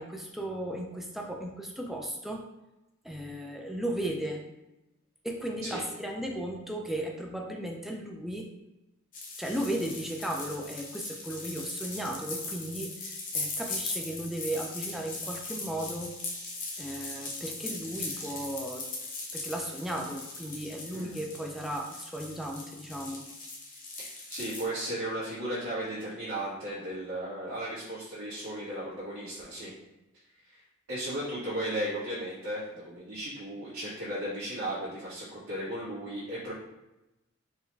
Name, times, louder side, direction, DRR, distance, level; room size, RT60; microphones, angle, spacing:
voice 1, 0.0-2.4 3.0-4.4 5.2-8.5 9.4-16.2 16.8-18.9 19.3-23.2, right 1 dB, ahead, 0 dB, 0.3 m, -35 dB
sound 1, 9.1-24.7, left 3 dB, 40° left, 0.8 m, -39 dB
voice 2, 20.9-21.2 24.0-29.7 30.5-30.6 30.9-36.5, right 1 dB, 70° right, -14 dB, 1.4 m, -35 dB
4.5 x 2.2 x 3.2 m, 0.97 s
head